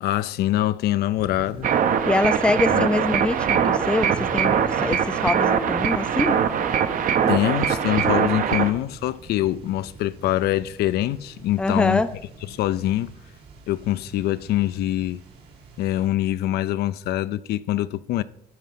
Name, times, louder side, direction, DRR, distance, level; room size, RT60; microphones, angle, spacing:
voice 1, 0.0-1.7 2.7-2.9 7.3-12.0 12.5-13.1 13.7-15.2 15.8-18.2, left 14 dB, 70° left, 0.4 m, -24 dB
sound 1, 1.1-16.1, right 4 dB, 80° right, 2.4 m, -43 dB
sound 2, 1.6-8.7, right 8 dB, 50° right, 0.7 m, -22 dB
voice 2, 2.0-6.4 11.6-12.1, left 2 dB, 5° left, 0.4 m, -24 dB
11.5 x 4.2 x 5.6 m
cardioid pair, 110°, 17 cm